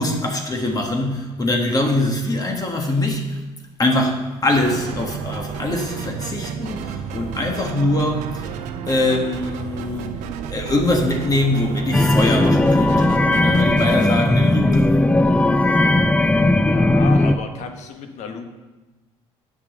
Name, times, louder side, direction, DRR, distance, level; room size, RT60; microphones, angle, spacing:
voice 1, 0.0-3.4 3.8-8.5 8.9-10.1 10.5-14.9, left 1 dB, 30° left, 2 dB, 1.5 m, -23 dB
sound 1, 4.6-14.2, right 7 dB, 80° right, 0.7 m, -31 dB
sound 2, 11.9-17.4, left 2 dB, 10° left, 0.5 m, -17 dB
voice 2, 16.4-18.5, left 6 dB, 65° left, 6 dB, 1.2 m, -33 dB
7.4 x 6.2 x 6.4 m, 1.1 s
supercardioid pair, 80°, 13 cm